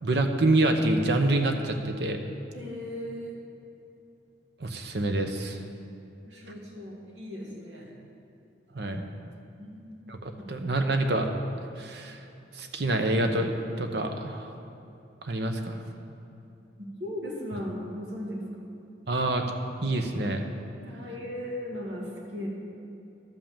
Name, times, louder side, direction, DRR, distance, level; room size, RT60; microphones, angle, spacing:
voice 1, 0.0-2.2 4.6-5.6 8.7-9.0 10.1-11.3 11.8-12.2 12.5-13.5 13.8-14.5 15.2-15.8 19.1-19.4 19.8-20.4, right 2 dB, 65° right, 5 dB, 0.9 m, -26 dB
voice 2, 2.5-3.4 6.2-8.0 9.6-10.0 17.0-18.5 20.8-22.5, left 1 dB, 85° right, -3 dB, 2.3 m, -37 dB
12.0 x 5.5 x 7.2 m, 2.7 s
head